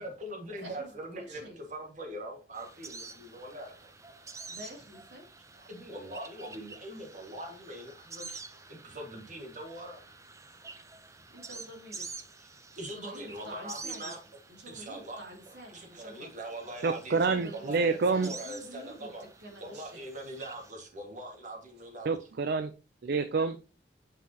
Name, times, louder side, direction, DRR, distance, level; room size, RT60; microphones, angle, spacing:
voice 1, 0.0-3.9 5.5-8.4 8.7-10.0 12.4-12.5 12.8-14.2 14.7-15.2 15.7-17.2 17.5-19.2 19.6-22.2, right 1 dB, 45° right, 1.9 m, -42 dB
voice 2, 0.6-1.6 4.5-5.3 8.5-8.8 11.3-12.3 12.9-14.1 14.5-16.3 17.1-19.1 19.4-20.1, equal, 80° right, 2.7 m, -48 dB
sound 1, 2.5-20.7, right 4 dB, 15° right, 0.6 m, -48 dB
voice 3, 16.8-18.3 22.0-22.7 23.0-23.6, right 4 dB, 60° right, 0.5 m, -28 dB
8.6 x 5.7 x 2.9 m
head